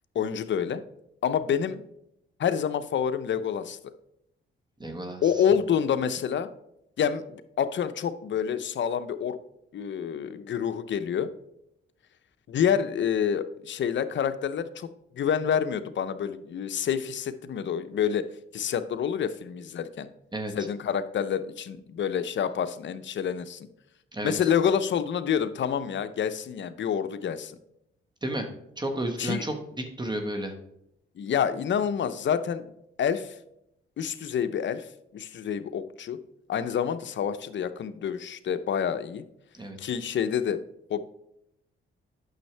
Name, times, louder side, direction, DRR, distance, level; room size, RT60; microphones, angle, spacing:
voice 1, 0.1-0.8 1.2-1.8 2.4-3.8 5.2-6.5 7.0-9.4 9.7-11.3 12.5-14.9 15.2-18.3 18.5-20.1 20.6-23.7 24.2-27.5 29.2-29.4 31.2-32.7 33.0-33.3 34.0-34.9 35.1-36.2 36.5-39.2 39.8-40.6 40.9-41.0, left 8 dB, 65° left, 11 dB, 0.7 m, -28 dB
voice 2, 4.8-5.3 20.3-20.5 24.1-24.3 28.2-28.5 28.8-30.5 39.5-39.8, right 1 dB, 20° right, 5 dB, 1.3 m, -32 dB
9.1 x 6.4 x 3.3 m, 0.80 s
cardioid pair, 85°, 21 cm